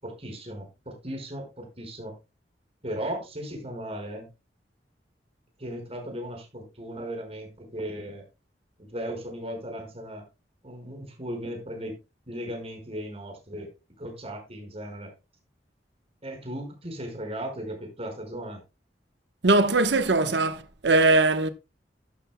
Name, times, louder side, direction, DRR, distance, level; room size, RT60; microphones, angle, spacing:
voice 1, 0.0-2.2 2.8-4.3 5.6-8.2 8.8-10.2 10.6-12.0 12.3-13.7 14.0-15.1 16.2-18.6, equal, 35° right, 5.0 m, -36 dB
voice 2, 19.4-21.5, right 2 dB, 75° right, 1.1 m, -21 dB
13.0 x 11.5 x 2.2 m
head